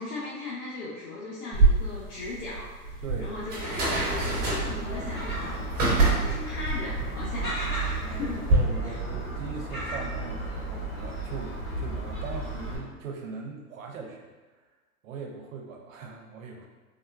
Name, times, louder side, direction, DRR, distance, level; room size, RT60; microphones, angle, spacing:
voice 1, 0.0-8.5 8.8-9.0, left 2 dB, 80° left, -7 dB, 0.8 m, -38 dB
sound 1, 1.5-8.6, right 3 dB, 20° right, 0.8 m, -27 dB
voice 2, 3.0-3.5 8.5-14.3 15.0-16.7, right 5 dB, 60° right, 2 dB, 0.6 m, -40 dB
Gull seagull, 3.8-12.8, right 2 dB, 25° left, 1.0 m, -34 dB
3.5 x 2.2 x 2.4 m, 1.3 s
hypercardioid pair, 145°, 45 cm